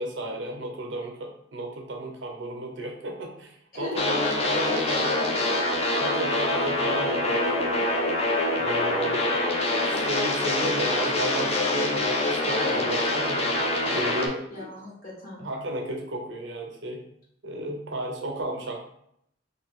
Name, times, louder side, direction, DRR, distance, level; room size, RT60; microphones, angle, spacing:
voice 1, 0.0-5.1 6.0-7.7 8.6-9.3 9.7-14.7 15.4-17.0 17.4-18.8, right 1 dB, 70° right, 2 dB, 0.7 m, -34 dB
voice 2, 3.7-4.5 5.0-5.6 6.0-6.3 8.4-8.7 14.5-15.5, left 1 dB, 50° left, -5 dB, 1.4 m, -38 dB
sound 1, 4.0-14.3, left 2 dB, 30° left, 0.5 m, -25 dB
2.8 x 2.7 x 3.5 m, 0.72 s
head